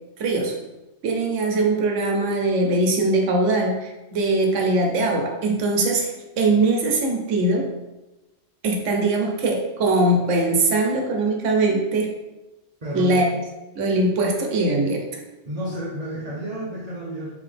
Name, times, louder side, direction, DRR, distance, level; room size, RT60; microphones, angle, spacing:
voice 1, 0.2-0.5 1.0-7.7 8.6-12.1 12.9-13.3 13.8-15.0, right 2 dB, 90° right, 2 dB, 1.1 m, -21 dB
voice 2, 12.8-13.3 15.4-17.4, right 1 dB, 40° right, -6 dB, 0.8 m, -31 dB
3.8 x 3.3 x 3.3 m, 1.1 s
omnidirectional pair, 1.2 m